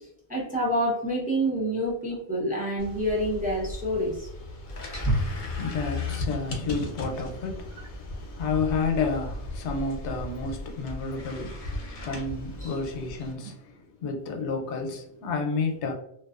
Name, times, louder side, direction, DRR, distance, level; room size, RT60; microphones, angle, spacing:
voice 1, 0.3-4.3 12.6-12.7, equal, 10° right, 0.4 m, -27 dB
sound 1, 2.8-13.3, left 2 dB, 55° left, 0.7 m, -37 dB
Wild animals, 4.6-13.1, right 1 dB, 20° left, 0.9 m, -37 dB
voice 2, 4.9-15.9, left 4 dB, 90° left, 0.9 m, -31 dB
2.6 x 2.2 x 2.3 m
omnidirectional pair, 1.1 m